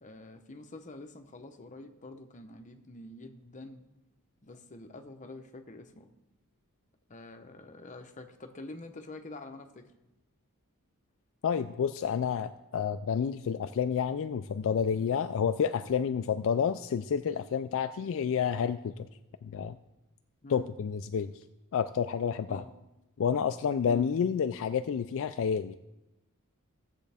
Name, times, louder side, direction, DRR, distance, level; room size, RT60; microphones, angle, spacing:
voice 1, 0.0-3.8 4.4-6.1 7.1-9.9 20.4-20.7 22.5-22.7 23.9-24.1, left 2 dB, 35° left, 6 dB, 0.8 m, -46 dB
voice 2, 11.4-19.1 19.4-19.8 20.5-21.3 21.7-22.6 23.2-25.8, left 7 dB, 60° left, 10 dB, 0.3 m, -29 dB
16.0 x 7.4 x 3.4 m, 0.99 s
head